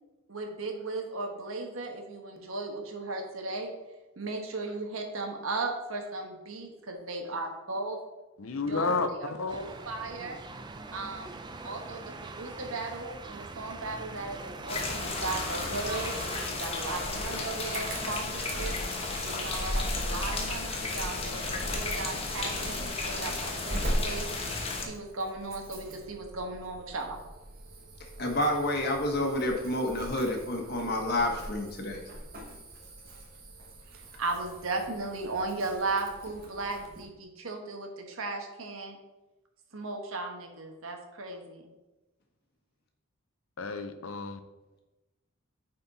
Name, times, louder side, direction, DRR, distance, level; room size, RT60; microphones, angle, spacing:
voice 1, 0.3-3.7 4.2-8.0 8.7-10.4 10.9-11.4 11.6-16.2 16.5-18.7 19.2-24.3 24.8-27.2 33.9-39.0 39.7-41.7, right 3 dB, 90° right, 3 dB, 1.3 m, -36 dB
voice 2, 8.4-9.6 43.6-44.4, left 3 dB, 85° left, 9 dB, 0.7 m, -31 dB
sound 1, 9.5-16.5, right 3 dB, 20° right, 0.4 m, -42 dB
sound 2, 14.7-24.9, left 2 dB, 30° left, 1.1 m, -33 dB
Insect / Alarm, 17.6-37.0, right 1 dB, 45° right, 1.2 m, -41 dB
voice 3, 28.2-32.0, left 1 dB, 50° left, 2 dB, 1.3 m, -29 dB
9.2 x 4.3 x 4.1 m, 1.1 s
head